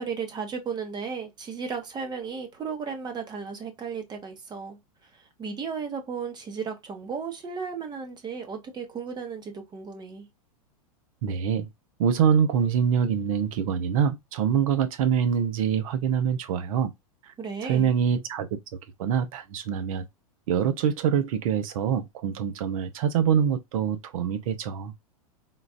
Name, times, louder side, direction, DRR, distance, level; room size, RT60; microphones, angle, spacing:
voice 1, 0.0-4.8 5.4-10.3 17.4-17.9, right 5 dB, 20° right, 0.9 m, -34 dB
voice 2, 11.2-11.7 12.0-16.9 17.6-18.5 19.0-20.1 20.5-24.9, right 8 dB, 65° right, 0.8 m, -25 dB
3.8 x 2.5 x 2.4 m
hypercardioid pair, 115°, 19 cm